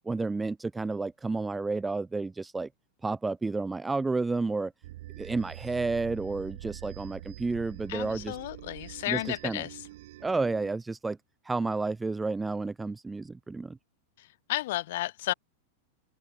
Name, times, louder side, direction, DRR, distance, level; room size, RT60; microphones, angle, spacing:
voice 1, 0.0-2.7 3.0-4.7 5.2-8.4 9.1-9.6 10.2-11.2 11.5-13.8, right 3 dB, 10° right, 0.6 m, -31 dB
sound 1, 4.8-10.7, right 16 dB, 55° right, 4.9 m, -45 dB
voice 2, 7.9-9.8 14.2-15.3, left 16 dB, 55° left, 1.6 m, -33 dB
figure-of-eight pair, 90°, 0 cm